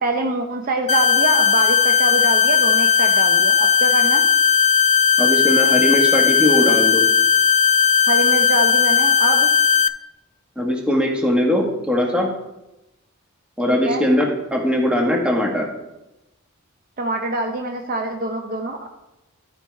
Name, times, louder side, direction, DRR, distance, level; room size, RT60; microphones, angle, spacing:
voice 1, 0.0-4.2 8.1-9.5 13.7-14.0 17.0-18.9, right 2 dB, 40° right, 3 dB, 0.7 m, -25 dB
sound 1, 0.9-9.9, left 7 dB, 30° left, 0.3 m, -16 dB
voice 2, 5.2-7.0 10.6-12.3 13.6-15.7, left 1 dB, 5° right, -1 dB, 1.5 m, -20 dB
13.0 x 4.7 x 4.6 m, 0.93 s
head